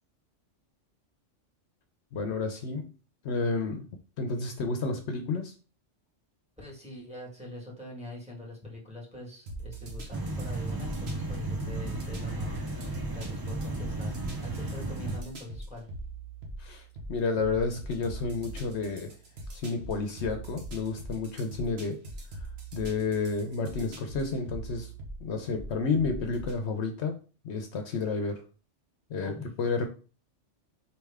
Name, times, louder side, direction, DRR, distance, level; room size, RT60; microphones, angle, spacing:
voice 1, 2.1-2.9 3.2-3.9 4.2-5.5 16.6-16.8 17.1-19.2 19.5-22.0 22.7-24.9 25.2-27.2 27.4-28.5 29.1-29.9, left 4 dB, 70° left, 6 dB, 0.9 m, -31 dB
voice 2, 6.6-12.6 13.1-15.9 29.2-29.5, left 2 dB, 5° right, -3 dB, 1.7 m, -43 dB
sound 1, 9.5-26.6, right 2 dB, 60° right, 1.2 m, -42 dB
sound 2, 10.1-15.2, right 2 dB, 25° right, 0.6 m, -34 dB
4.5 x 3.3 x 3.5 m, 0.36 s
omnidirectional pair, 1.2 m